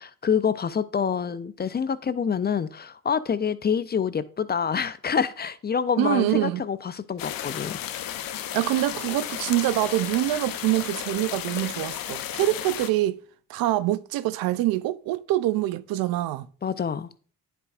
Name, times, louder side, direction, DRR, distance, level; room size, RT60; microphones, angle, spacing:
voice 1, 0.0-7.8 16.6-17.1, left 7 dB, 30° left, 0.4 m, -26 dB
voice 2, 6.0-6.6 8.5-13.2 13.5-16.5, right 15 dB, 75° right, 0.5 m, -25 dB
sound 1, 7.2-12.9, left 11 dB, 70° left, 0.7 m, -33 dB
10.0 x 4.7 x 2.4 m
supercardioid pair, 65°, 35 cm